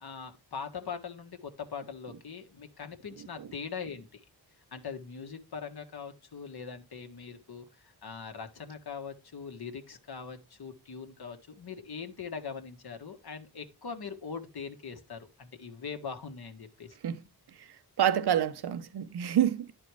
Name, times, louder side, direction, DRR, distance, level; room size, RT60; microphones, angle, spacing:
voice 1, 0.0-4.2 4.7-17.0, left 6 dB, 65° left, 1.4 m, -41 dB
voice 2, 18.0-19.7, right 10 dB, 70° right, 0.8 m, -27 dB
10.5 x 4.4 x 4.6 m
wide cardioid pair, 80°, 41 cm